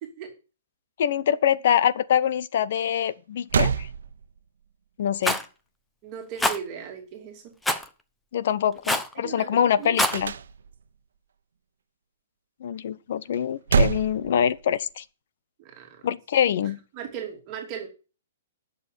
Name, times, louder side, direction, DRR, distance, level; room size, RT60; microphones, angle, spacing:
voice 1, 1.0-3.9 5.0-5.4 8.3-10.3 12.6-15.0 16.0-16.8, left 9 dB, 55° left, 0.9 m, -24 dB
sound 1, 3.1-3.2 3.5-4.6 10.1-11.0 13.3-14.9, right 6 dB, 80° right, 1.0 m, -26 dB
Rattle, 5.2-5.4 6.4-6.6 7.6-7.9 8.8-9.1 9.8-10.2, left 1 dB, 5° left, 0.9 m, -24 dB
voice 2, 6.0-7.5 9.2-10.0 15.6-16.2 16.6-17.9, right 8 dB, 30° right, 2.9 m, -38 dB
11.0 x 6.9 x 8.4 m
hypercardioid pair, 165°, 0 cm